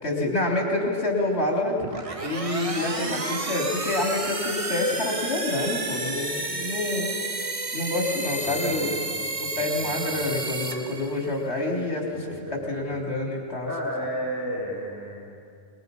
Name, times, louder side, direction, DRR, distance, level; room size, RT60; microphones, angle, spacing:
voice 1, 0.0-1.8 2.2-7.1 7.7-9.0 9.4-12.1 12.5-13.7, left 2 dB, 70° left, -1 dB, 4.0 m, -27 dB
sound 1, 1.8-11.5, right 2 dB, 30° right, 1.3 m, -31 dB
voice 2, 8.4-10.3 12.1-13.0 13.6-15.4, equal, 15° right, -1 dB, 4.7 m, -34 dB
27.0 x 21.5 x 5.5 m, 2.3 s
omnidirectional pair, 1.2 m